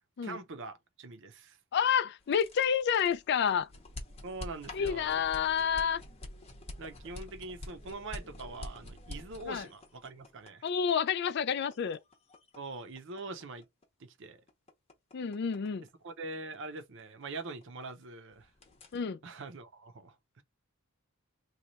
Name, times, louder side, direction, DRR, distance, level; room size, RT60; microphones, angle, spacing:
voice 1, 0.2-1.6 4.2-5.2 6.8-10.7 12.6-13.7 14.0-14.4 16.0-18.5 19.2-20.4, right 3 dB, 55° right, 0.6 m, -43 dB
voice 2, 1.7-3.7 4.7-6.0 9.5-9.7 10.6-12.0 15.1-15.8 18.9-19.2, left 7 dB, 50° left, 0.3 m, -29 dB
sound 1, 2.2-18.0 18.3-19.0, left 1 dB, 30° left, 0.8 m, -47 dB
3.1 x 2.3 x 3.9 m
head